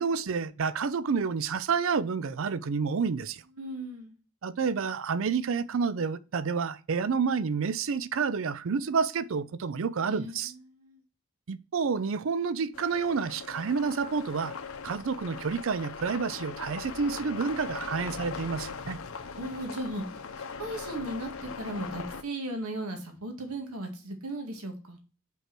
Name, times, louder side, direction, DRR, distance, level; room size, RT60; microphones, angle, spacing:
voice 1, 0.0-3.4 4.4-10.5 11.5-14.5 14.8-19.0, right 5 dB, 65° right, 0.4 m, -29 dB
voice 2, 3.6-4.2 10.1-11.0 19.4-20.0 20.4-25.0, right 1 dB, 90° right, 1.9 m, -37 dB
sound 1, 12.7-22.2, left 5 dB, 75° left, 0.8 m, -40 dB
5.4 x 4.7 x 5.9 m
head